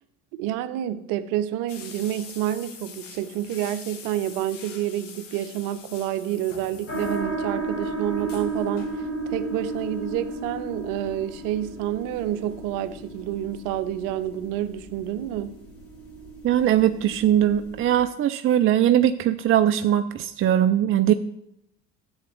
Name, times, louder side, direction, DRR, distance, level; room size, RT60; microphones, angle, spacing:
voice 1, 0.3-9.0 9.3-15.5, right 12 dB, 65° right, 0.8 m, -29 dB
sound 1, 1.7-7.5 7.8-7.9 8.2-9.0 10.1-10.4 10.9-12.2 12.5-12.6 13.0-13.1, left 6 dB, 85° left, 1.2 m, -45 dB
sound 2, 6.9-18.0, right 2 dB, 35° left, 3.3 m, -34 dB
voice 2, 16.4-21.1, right 11 dB, 35° right, 0.5 m, -20 dB
13.0 x 8.0 x 3.1 m
hypercardioid pair, 55°, 36 cm